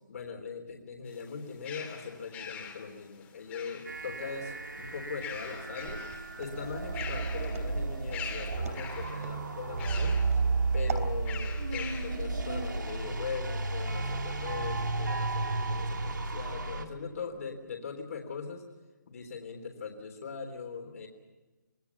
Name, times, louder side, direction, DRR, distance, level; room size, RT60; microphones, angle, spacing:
voice 1, 0.1-10.2 10.7-18.6 19.1-21.1, left 5 dB, 50° left, 3 dB, 3.6 m, -40 dB
sound 1, 1.1-4.2 5.0-6.3 6.7-7.7 8.1-9.2 9.8-10.3 11.2-12.2, left 7 dB, 15° left, 2.7 m, -43 dB
sound 2, 3.8-16.8, right 3 dB, 75° right, 2.6 m, -33 dB
Walk footsteps, 5.8-11.1, right 5 dB, 50° right, 3.4 m, -43 dB
26.0 x 18.5 x 7.1 m, 1.2 s
figure-of-eight pair, 150°, 10 cm